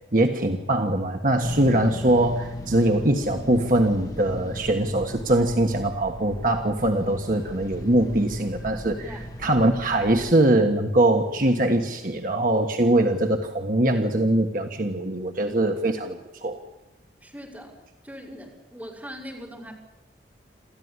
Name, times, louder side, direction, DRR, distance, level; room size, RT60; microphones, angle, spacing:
voice 1, 0.1-9.1 9.4-16.6, right 1 dB, 50° right, 3 dB, 1.5 m, -22 dB
sound 1, 1.4-10.3, left 1 dB, 20° left, 1.2 m, -35 dB
voice 2, 17.2-17.8 18.0-19.7, equal, 10° right, -2 dB, 5.4 m, -40 dB
27.5 x 14.5 x 9.8 m, 1.0 s
head